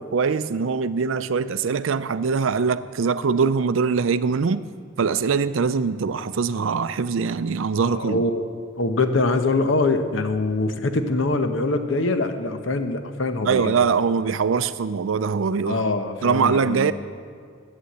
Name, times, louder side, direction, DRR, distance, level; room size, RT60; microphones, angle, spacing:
voice 1, 0.0-4.6 5.0-8.2 13.5-15.8 16.2-16.9, right 5 dB, 75° right, 14 dB, 0.4 m, -22 dB
voice 2, 7.8-8.5 8.8-13.7 15.7-16.9, left 2 dB, 70° left, 8 dB, 0.9 m, -23 dB
11.5 x 7.9 x 7.8 m, 2.1 s
head